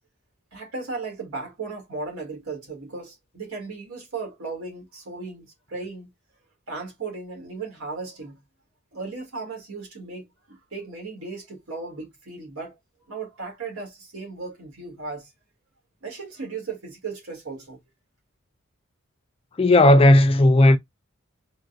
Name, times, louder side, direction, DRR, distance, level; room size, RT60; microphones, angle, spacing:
voice 1, 0.5-6.1 6.7-8.4 8.9-12.8 13.1-15.3 16.0-17.8, right 4 dB, 90° right, 1.6 m, -36 dB
voice 2, 19.6-20.8, left 1 dB, 25° left, 0.3 m, -14 dB
3.7 x 2.2 x 2.4 m
head